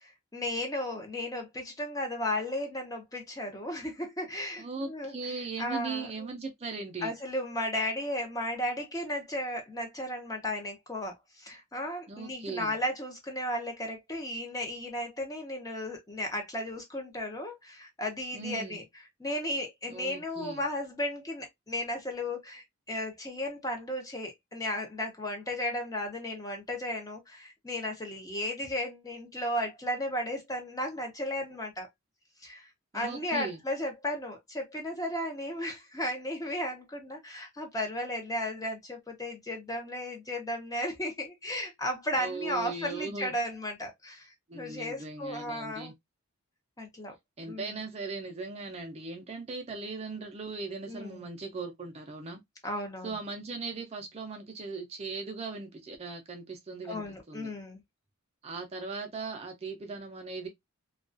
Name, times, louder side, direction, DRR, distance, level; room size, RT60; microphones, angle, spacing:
voice 1, 0.3-5.1 5.6-6.3 7.0-18.8 19.2-31.9 32.4-32.7 32.9-45.9 46.8-47.2 47.5-47.7 50.9-51.3 52.6-53.1 56.8-57.8, left 1 dB, 15° left, 0.6 m, -35 dB
voice 2, 4.6-7.1 12.1-12.8 18.3-18.8 19.9-20.6 32.9-33.6 42.2-43.3 44.5-45.9 47.4-52.4 53.0-57.5 58.4-60.5, right 4 dB, 30° right, 0.4 m, -38 dB
2.3 x 2.2 x 2.4 m
head